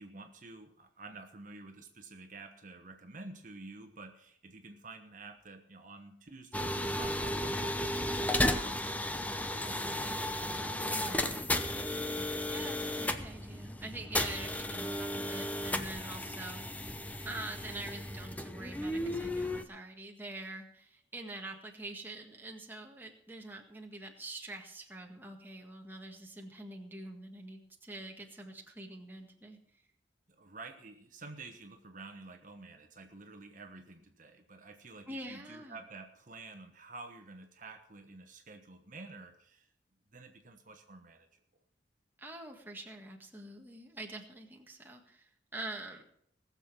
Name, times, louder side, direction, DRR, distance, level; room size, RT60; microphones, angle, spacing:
voice 1, 0.0-8.8 9.3-10.1 30.3-39.7 40.1-41.3, right 3 dB, 45° right, 5 dB, 1.2 m, -50 dB
sound 1, 6.5-19.6, left 1 dB, 10° left, 0.7 m, -34 dB
voice 2, 10.9-16.9 17.3-29.6 35.1-35.8 42.2-46.0, right 2 dB, 10° right, 1 dB, 1.7 m, -45 dB
19.5 x 7.2 x 6.1 m, 0.68 s
head